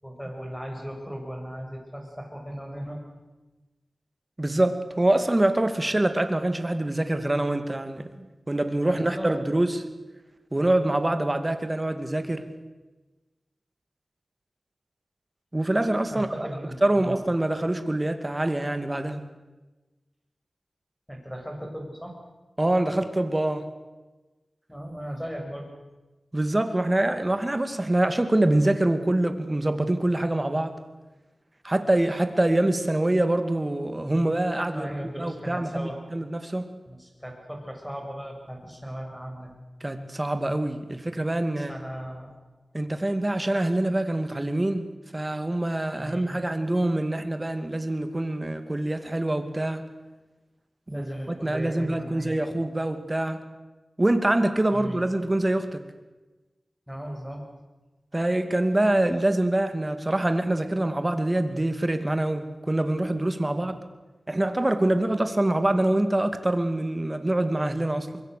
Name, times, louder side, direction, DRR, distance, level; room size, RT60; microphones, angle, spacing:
voice 1, 0.0-3.0 8.1-8.3 8.8-9.3 16.1-17.2 21.1-22.2 24.7-25.7 34.7-36.0 36.9-39.6 41.6-42.4 46.0-46.4 46.7-46.9 50.9-52.4 54.7-55.0 56.9-57.5 63.5-63.8, equal, ahead, 1 dB, 7.0 m, -37 dB
voice 2, 4.4-8.1 8.5-9.8 10.5-12.5 15.5-19.2 22.6-23.7 26.3-30.8 31.6-34.9 35.2-36.7 39.8-41.8 42.7-44.9 45.1-49.8 50.9-53.4 54.0-55.8 58.1-63.8 64.3-68.2, right 1 dB, 25° right, 9 dB, 2.4 m, -25 dB
24.5 x 22.5 x 6.8 m, 1.2 s
wide cardioid pair, 70°, 0 cm